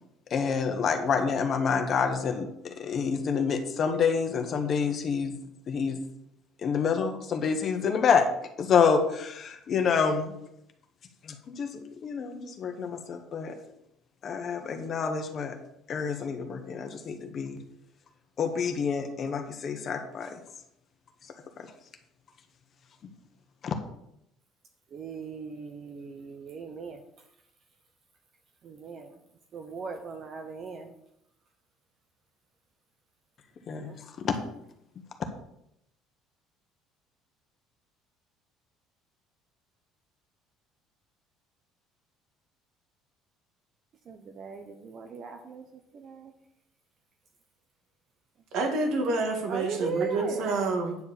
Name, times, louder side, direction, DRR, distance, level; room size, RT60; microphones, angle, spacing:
voice 1, 0.3-5.3 5.7-6.0 6.6-8.3 8.6-10.3 11.2-13.5 14.2-15.5 15.9-17.6 18.4-20.4 23.6-23.7 33.7-33.9 34.2-34.3, left 6 dB, 40° left, 6 dB, 1.2 m, -27 dB
voice 2, 24.9-27.0 28.6-29.2 29.5-30.9 33.8-34.0 44.1-45.6 45.9-46.3 49.5-50.5, right 5 dB, 40° right, 5 dB, 0.8 m, -38 dB
voice 3, 48.5-51.0, right 3 dB, 60° right, 4 dB, 1.8 m, -28 dB
9.5 x 4.5 x 7.1 m, 0.80 s
cardioid pair, 140°, 0 cm